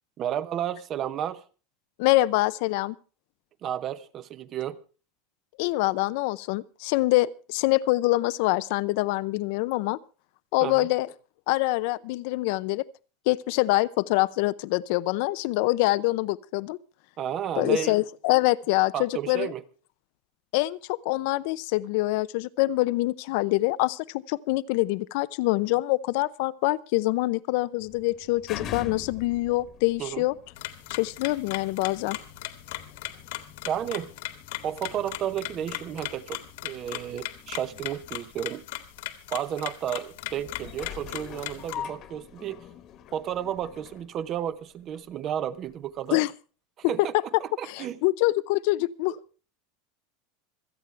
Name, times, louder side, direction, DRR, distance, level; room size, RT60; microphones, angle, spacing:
voice 1, 0.2-1.4 3.6-4.8 10.6-10.9 17.2-18.0 18.9-19.6 30.0-30.2 33.7-34.1 34.6-38.6 39.3-42.6 43.1-46.2 46.9-47.1 47.4-48.0, right 10 dB, 30° right, 0.9 m, -32 dB
voice 2, 2.0-3.0 5.6-10.0 10.5-11.1 11.5-12.8 13.3-16.8 17.6-19.5 20.5-30.3 30.9-32.2 46.1-46.3 46.8-46.9 47.6-49.2, left 19 dB, 60° left, 0.6 m, -25 dB
sound 1, 27.8-45.1 45.7-45.8, left 9 dB, 35° left, 1.4 m, -45 dB
sound 2, 30.6-41.8, left 15 dB, 75° left, 1.9 m, -38 dB
27.0 x 9.1 x 3.3 m
supercardioid pair, 165°, 0 cm